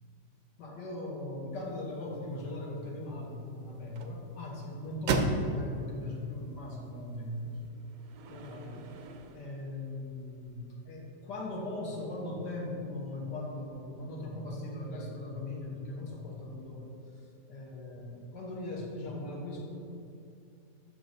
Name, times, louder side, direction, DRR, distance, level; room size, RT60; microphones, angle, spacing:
voice 1, 0.6-7.6 8.3-8.9 9.3-16.9 17.5-19.7, left 2 dB, 85° left, -2 dB, 1.8 m, -39 dB
sound 1, 1.5-7.7, right 3 dB, 70° right, 0.6 m, -37 dB
sound 2, 6.8-12.0 15.9-16.0 16.6-16.7, right 4 dB, 85° right, 1.2 m, -55 dB
6.3 x 4.6 x 5.3 m, 2.5 s
omnidirectional pair, 1.8 m